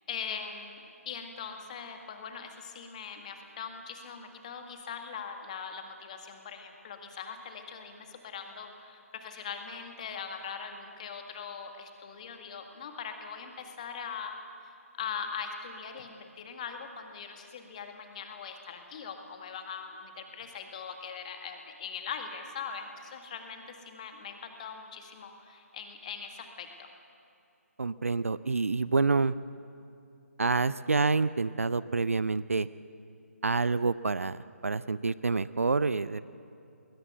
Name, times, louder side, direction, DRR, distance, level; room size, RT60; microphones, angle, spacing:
voice 1, 0.1-14.4 14.6-26.9, left 6 dB, 30° left, 5 dB, 1.8 m, -41 dB
voice 2, 27.8-29.3 30.4-32.7 33.4-36.2, right 4 dB, 60° right, 17 dB, 0.6 m, -27 dB
21.0 x 19.5 x 8.1 m, 2.7 s
figure-of-eight pair, 145°, 8 cm